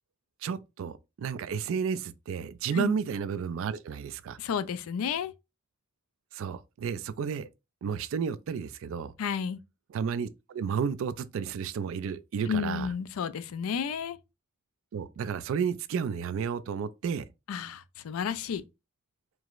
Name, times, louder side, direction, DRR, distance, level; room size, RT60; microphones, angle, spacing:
voice 1, 0.4-4.4 6.3-7.5 7.8-9.1 9.9-12.9 14.9-17.2, right 7 dB, 65° right, 0.3 m, -32 dB
voice 2, 4.4-5.3 9.2-9.6 12.5-14.2 17.5-18.6, left 7 dB, 75° left, 0.3 m, -31 dB
4.6 x 2.0 x 2.4 m
head